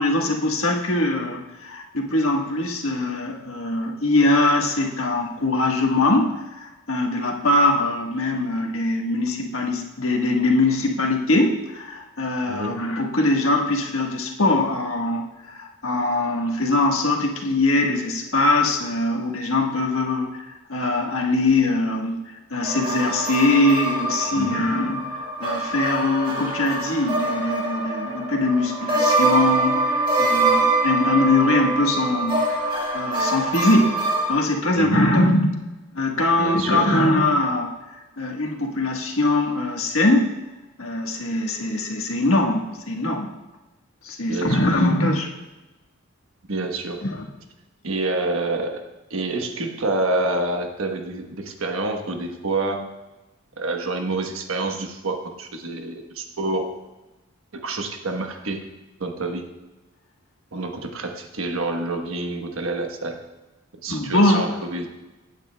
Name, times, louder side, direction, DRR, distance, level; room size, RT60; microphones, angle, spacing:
voice 1, 0.0-22.2 22.5-35.5 35.9-37.7 38.2-40.3 40.8-43.3 44.0-45.3 47.0-47.2 63.9-64.4, left 2 dB, 75° left, 1 dB, 1.4 m, -22 dB
voice 2, 12.5-12.8 24.3-24.7 34.8-35.1 36.4-37.0 44.3-44.7 46.5-47.1 47.8-48.8 49.1-52.9 53.6-56.8 57.6-58.7 59.0-59.5 60.5-63.2 63.8-64.9, right 2 dB, 75° right, 4 dB, 1.2 m, -27 dB
sound 1, 22.6-34.3, right 2 dB, 20° right, 1.5 m, -24 dB
16.0 x 8.9 x 2.3 m, 1.1 s
head